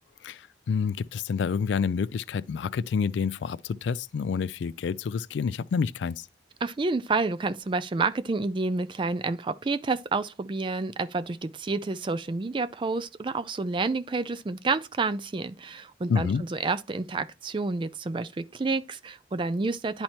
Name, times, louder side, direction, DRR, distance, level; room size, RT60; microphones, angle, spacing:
voice 1, 0.2-6.3 16.1-16.4, left 6 dB, 75° left, 0.3 m, -28 dB
voice 2, 6.6-20.0, right 3 dB, 25° right, 0.4 m, -29 dB
10.5 x 4.3 x 2.9 m
head